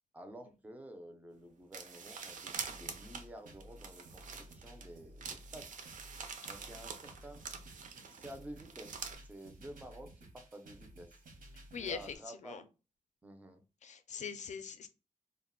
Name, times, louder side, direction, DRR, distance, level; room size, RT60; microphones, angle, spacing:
voice 1, 0.1-5.7 6.4-7.4 7.9-11.2 11.8-12.7 13.2-13.6, right 1 dB, 10° right, 0.4 m, -51 dB
sound 1, 1.7-4.8 5.2-9.2, right 5 dB, 70° right, 0.4 m, -45 dB
sound 2, 2.6-12.2, right 1 dB, 85° right, 0.8 m, -55 dB
voice 2, 11.7-12.6 13.8-14.9, left 6 dB, 60° left, 0.4 m, -42 dB
2.3 x 2.0 x 3.7 m
wide cardioid pair, 175°, 14 cm